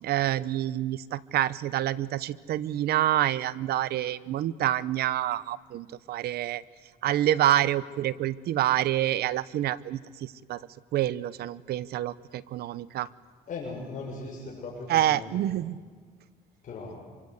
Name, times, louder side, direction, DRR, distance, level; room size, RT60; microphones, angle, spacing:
voice 1, 0.0-6.6 7.0-10.6 10.9-13.1 14.9-15.8, right 13 dB, 70° right, 18 dB, 0.9 m, -27 dB
voice 2, 13.5-15.4 16.6-17.0, left 3 dB, 50° left, -2 dB, 6.6 m, -38 dB
26.5 x 24.5 x 8.2 m, 1.5 s
cardioid pair, 110°, 17 cm